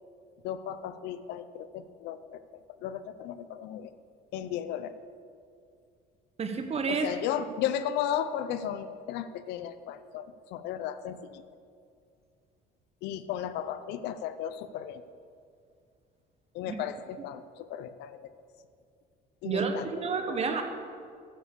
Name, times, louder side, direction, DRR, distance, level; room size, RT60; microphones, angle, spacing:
voice 1, 0.4-3.9 4.3-4.9 6.9-11.4 13.0-15.0 16.5-18.3 19.4-19.9 20.3-20.4, left 10 dB, 90° left, 13 dB, 0.6 m, -35 dB
voice 2, 6.4-7.1 16.7-16.8 19.4-20.6, right 5 dB, 40° right, 6 dB, 1.2 m, -30 dB
10.0 x 7.5 x 6.7 m, 2.3 s
cardioid pair, 110°, 17 cm